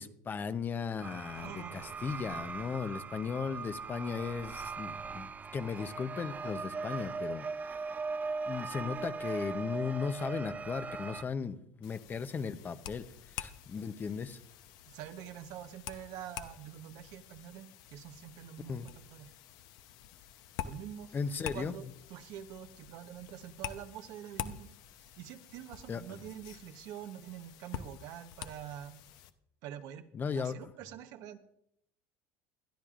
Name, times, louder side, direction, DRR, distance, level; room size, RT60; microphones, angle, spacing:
voice 1, 0.0-7.5 8.5-13.1 13.3-14.4 18.7-18.9 21.1-21.7 25.9-26.2 30.1-30.7, left 6 dB, 30° left, 11 dB, 0.7 m, -36 dB
sound 1, 1.0-11.2, right 4 dB, 25° right, 0.5 m, -39 dB
voice 2, 1.3-2.2 5.7-5.9 14.9-19.3 20.6-21.1 21.5-21.8 22.1-24.8 25.2-29.0 29.6-30.0 30.3-31.4, right 10 dB, 65° right, 8 dB, 1.0 m, -46 dB
sound 2, 11.8-29.3, left 10 dB, 65° left, 0.8 m, -47 dB
20.5 x 12.0 x 2.5 m, 0.72 s
supercardioid pair, 110°, 7 cm